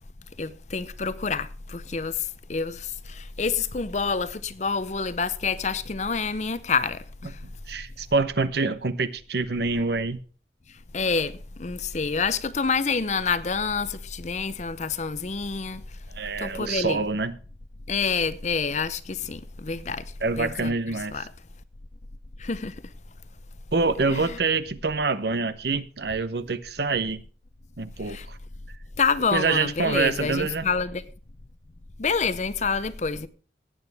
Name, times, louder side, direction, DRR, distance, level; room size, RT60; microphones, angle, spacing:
voice 1, 0.4-7.4 10.9-15.8 16.4-17.0 17.9-20.0 20.4-20.7 21.1-21.2 22.4-22.7 24.1-24.4 28.1-28.3 29.0-31.0 32.0-33.3, left 5 dB, 40° left, 0.6 m, -27 dB
voice 2, 7.4-10.2 16.1-17.4 20.2-21.3 23.7-27.2 27.8-28.4 29.3-30.7, right 4 dB, 60° right, 0.8 m, -26 dB
17.0 x 8.6 x 3.5 m
head